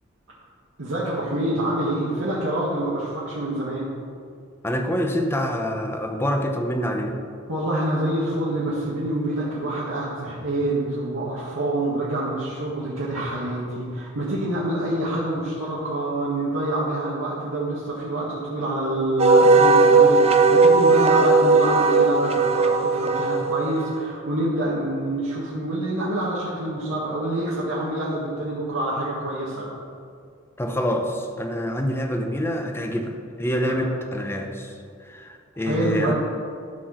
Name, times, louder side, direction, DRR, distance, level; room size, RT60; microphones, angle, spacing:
voice 1, 0.8-3.9 7.5-29.7 33.6-33.9 35.6-36.1, right 1 dB, 80° right, -8 dB, 1.7 m, -26 dB
voice 2, 4.6-7.2 30.6-34.7 35.0-36.1, equal, 10° left, 3 dB, 0.8 m, -26 dB
Wind instrument woodwind instrument, 19.2-24.0, right 3 dB, 30° right, 0.5 m, -17 dB
12.5 x 4.6 x 6.2 m, 2.3 s
head